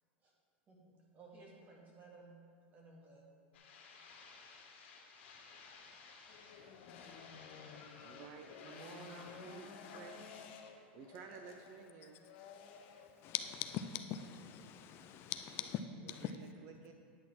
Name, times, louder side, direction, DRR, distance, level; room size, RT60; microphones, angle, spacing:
voice 1, 0.7-2.3 2.7-3.3, right 3 dB, 25° right, 2.1 m, -58 dB
sound 1, 3.5-10.4, left 4 dB, 85° left, 1.7 m, -57 dB
sound 2, 6.3-14.3, left 6 dB, 60° left, 0.9 m, -55 dB
voice 2, 7.1-10.2 10.7-12.3 16.1-16.9, right 6 dB, 45° right, 0.6 m, -54 dB
voice 3, 12.4-16.3, left 9 dB, 40° left, 0.4 m, -43 dB
10.0 x 4.2 x 7.3 m
supercardioid pair, 135°, 6 cm